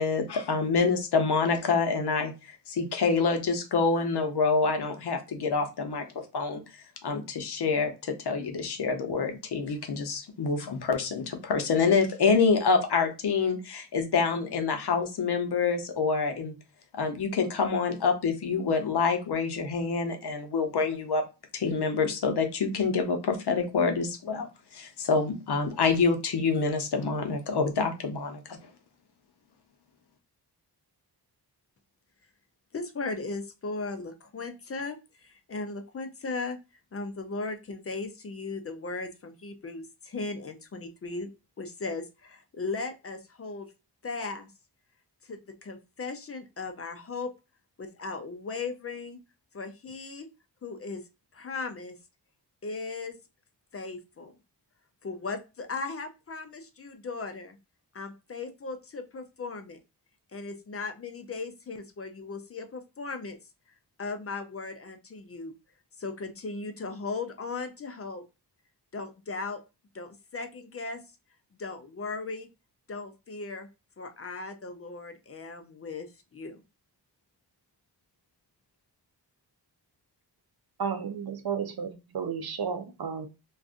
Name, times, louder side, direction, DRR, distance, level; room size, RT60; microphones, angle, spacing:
voice 1, 0.0-2.3 2.7-6.0 6.3-6.6 7.0-16.5 16.9-21.2 21.5-24.5 24.7-28.4, left 4 dB, 65° left, 5 dB, 0.7 m, -26 dB
voice 2, 32.7-36.6 36.9-41.3 41.6-43.7 44.0-44.5 45.2-47.3 47.8-49.2 49.5-50.3 50.6-51.0 51.3-52.0 52.6-53.2 53.7-54.3 55.0-57.6 57.9-59.8 60.3-63.4 64.0-65.5 66.0-68.2 68.9-69.6 69.9-71.0 71.6-72.5 72.9-73.7 74.0-76.1 76.3-76.6, left 3 dB, 35° left, 7 dB, 0.4 m, -37 dB
voice 3, 80.8-83.3, right 6 dB, 60° right, 8 dB, 0.6 m, -33 dB
2.5 x 2.4 x 3.5 m, 0.28 s
wide cardioid pair, 105°, 42 cm